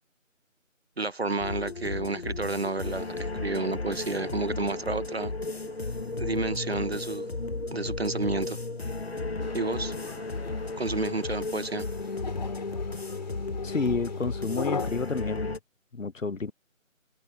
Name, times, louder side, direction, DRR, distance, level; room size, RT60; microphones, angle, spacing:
voice 1, 1.0-5.3 6.2-7.3 7.7-8.6 9.5-9.9 10.8-11.8, right 3 dB, 50° right, 1.3 m, -30 dB
sound 1, 1.4-15.6, left 3 dB, 50° left, 1.3 m, -34 dB
sound 2, 2.9-10.6, right 2 dB, 75° right, 5.2 m, -52 dB
sound 3, 9.4-14.9, left 4 dB, 35° left, 4.8 m, -40 dB
voice 2, 13.6-15.6 15.9-16.5, left 4 dB, 70° left, 1.1 m, -30 dB
figure-of-eight pair, 165°, 40 cm